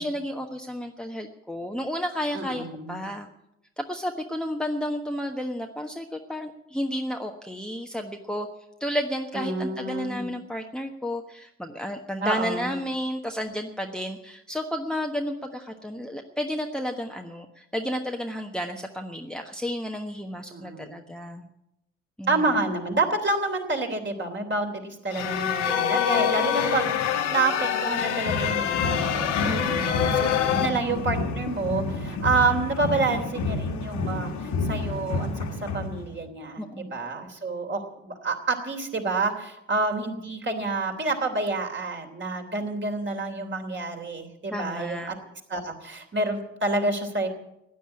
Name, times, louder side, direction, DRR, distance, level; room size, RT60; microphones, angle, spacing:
voice 1, 0.0-3.3 3.8-8.5 8.8-21.5 22.2-22.5 29.4-30.1 36.6-36.9 44.5-45.1, equal, ahead, 4 dB, 1.3 m, -32 dB
voice 2, 2.3-3.0 9.3-10.3 12.2-12.7 20.5-21.0 22.3-30.3 30.6-45.1 45.5-47.3, right 3 dB, 30° right, 3 dB, 3.2 m, -28 dB
sound 1, 25.1-30.7, left 9 dB, 80° left, 1.2 m, -25 dB
sound 2, 28.3-36.3, left 2 dB, 55° left, 1.8 m, -30 dB
16.0 x 10.0 x 8.6 m, 0.84 s
figure-of-eight pair, 45°, 35 cm